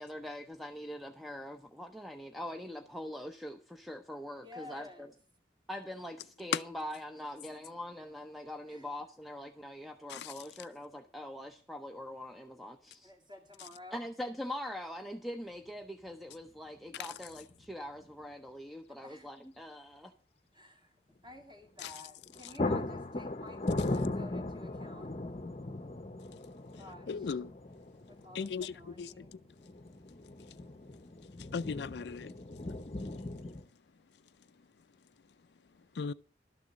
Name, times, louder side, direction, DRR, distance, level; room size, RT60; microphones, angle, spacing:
voice 1, 0.0-4.9 5.7-13.1 13.9-20.1, left 1 dB, ahead, 0.6 m, -43 dB
voice 2, 4.4-5.1 8.7-8.9 13.0-14.0 18.9-19.3 20.5-25.1 26.7-27.4 28.1-29.3, left 2 dB, 25° right, 2.1 m, -52 dB
sound 1, 15.6-15.7 17.3-17.7 18.0-18.1 21.8-22.0 22.3-33.6, left 2 dB, 35° left, 0.7 m, -38 dB
voice 3, 27.1-27.5 28.3-29.3 31.5-32.3 36.0-36.1, left 6 dB, 75° left, 0.4 m, -36 dB
12.5 x 6.9 x 6.3 m
head